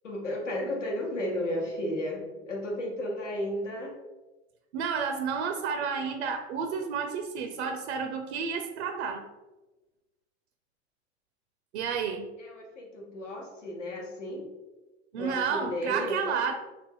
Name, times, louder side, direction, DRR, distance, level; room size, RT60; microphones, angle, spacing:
voice 1, 0.0-4.0 12.0-12.1 12.4-14.5 15.1-16.3, left 1 dB, 85° left, 0 dB, 0.9 m, -33 dB
voice 2, 4.7-9.2 11.7-12.3 15.1-16.5, right 6 dB, 65° right, 6 dB, 0.5 m, -31 dB
3.3 x 2.2 x 3.7 m, 1.1 s
hypercardioid pair, 90°, 35 cm